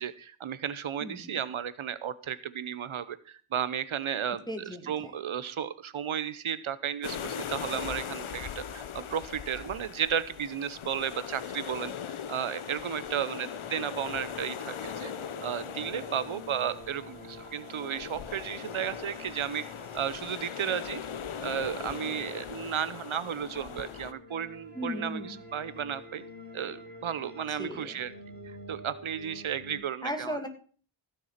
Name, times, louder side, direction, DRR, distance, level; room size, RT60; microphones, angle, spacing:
voice 1, 0.0-11.9 12.3-15.1 15.4-19.6 19.9-21.0 21.4-26.2 26.5-28.1 28.4-30.4, right 8 dB, 80° right, 15 dB, 0.9 m, -34 dB
voice 2, 1.0-1.4 4.5-5.1 24.7-25.4 27.5-28.0 30.0-30.5, equal, 10° left, 5 dB, 2.7 m, -37 dB
sound 1, 7.0-24.1, left 8 dB, 85° left, 1.1 m, -40 dB
sound 2, 13.0-29.8, left 1 dB, 20° right, 6.1 m, -48 dB
16.0 x 7.1 x 5.8 m, 0.42 s
wide cardioid pair, 105°, 48 cm